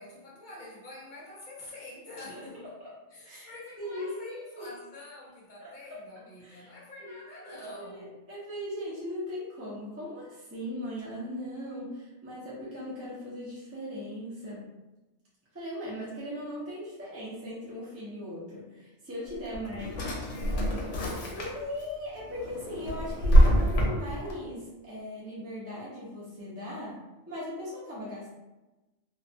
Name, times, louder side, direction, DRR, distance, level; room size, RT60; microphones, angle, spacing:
voice 1, 0.0-2.7 3.1-8.1 19.5-21.2, left 1 dB, 45° left, -5 dB, 0.8 m, -47 dB
voice 2, 3.2-4.7 5.6-6.0 6.4-6.7 7.0-7.1 7.4-14.7 15.5-20.1 21.3-28.3, left 1 dB, 25° right, -8 dB, 0.3 m, -39 dB
Drawer open or close, 19.3-21.8 22.3-24.3, equal, 85° left, 0.9 m, -25 dB
2.3 x 2.2 x 2.6 m, 1.1 s
omnidirectional pair, 1.2 m